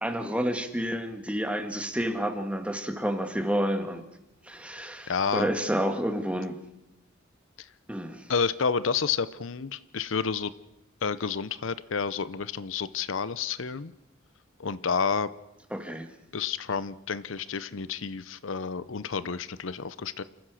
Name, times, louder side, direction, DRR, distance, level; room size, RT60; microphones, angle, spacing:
voice 1, 0.0-4.0 4.4-6.6 7.9-8.2 15.7-16.1, equal, 5° right, 7 dB, 1.7 m, -30 dB
voice 2, 5.1-5.5 7.6-7.7 8.3-10.5 11.0-13.9 14.6-15.3 16.3-20.2, left 5 dB, 75° left, 16 dB, 0.7 m, -30 dB
28.5 x 15.0 x 6.4 m, 0.94 s
head